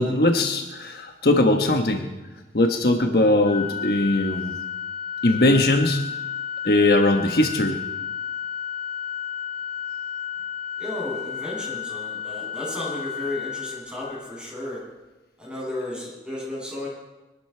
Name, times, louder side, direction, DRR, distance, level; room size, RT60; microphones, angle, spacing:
voice 1, 0.0-2.1 2.5-4.5 5.2-6.0 6.6-7.8, left 1 dB, 60° left, 4 dB, 1.2 m, -20 dB
Organ, 3.4-14.5, left 8 dB, 35° left, 2.0 m, -32 dB
voice 2, 10.8-14.8 15.4-16.9, left 1 dB, 5° right, -6 dB, 7.5 m, -33 dB
23.5 x 11.5 x 4.5 m, 1.1 s
head